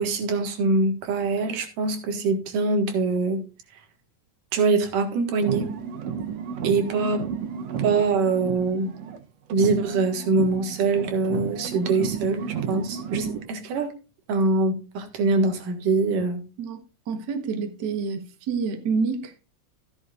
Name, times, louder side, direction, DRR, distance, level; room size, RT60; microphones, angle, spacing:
voice 1, 0.0-3.4 4.5-5.7 6.6-7.3 7.8-8.9 9.5-14.0 14.3-16.4, right 3 dB, 85° right, 3.3 m, -23 dB
sound 1, 5.3-9.2 9.5-13.5, right 7 dB, 65° right, 1.8 m, -33 dB
voice 2, 16.6-19.3, right 5 dB, 45° right, 1.6 m, -28 dB
14.0 x 11.0 x 2.5 m
omnidirectional pair, 3.6 m